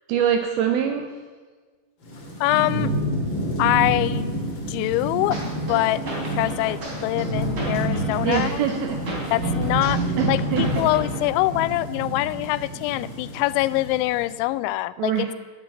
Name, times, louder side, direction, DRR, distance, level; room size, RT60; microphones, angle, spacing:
voice 1, 0.1-1.1 8.2-9.0 10.2-10.8 15.0-15.3, right 8 dB, 85° right, 6 dB, 2.2 m, -24 dB
Thunderstorm / Rain, 2.0-14.3, right 1 dB, 35° left, 2.1 m, -28 dB
voice 2, 2.4-2.9 3.6-4.4 4.7-8.6 9.3-10.0 10.3-15.3, left 17 dB, 85° left, 17 dB, 2.9 m, -24 dB
sound 1, 5.3-11.3, right 1 dB, 30° right, 3.4 m, -35 dB
sound 2, 5.5-10.8, equal, 10° left, 4.8 m, -47 dB
12.5 x 9.1 x 8.8 m, 1.5 s
omnidirectional pair, 5.4 m